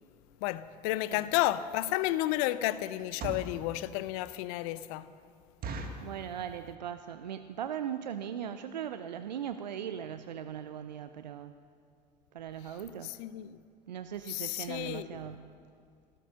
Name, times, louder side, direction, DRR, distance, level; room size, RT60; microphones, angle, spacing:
voice 1, 0.4-5.1 13.0-13.6 14.3-15.4, left 15 dB, 65° left, 0.6 m, -32 dB
sound 1, 1.4-1.5 2.0-2.2 2.9-3.6 4.2-4.3 4.6-4.7 5.0-5.1 5.6-6.1 6.7-7.0 7.3-7.4 7.6-7.9 8.4-8.5 8.7-8.9 9.2-9.3 9.5-9.6, right 3 dB, 45° right, 1.7 m, -39 dB
voice 2, 6.0-11.5 12.3-13.1 13.9-15.5, right 9 dB, 85° right, 0.5 m, -39 dB
15.5 x 12.5 x 6.4 m
hypercardioid pair, 70°, 21 cm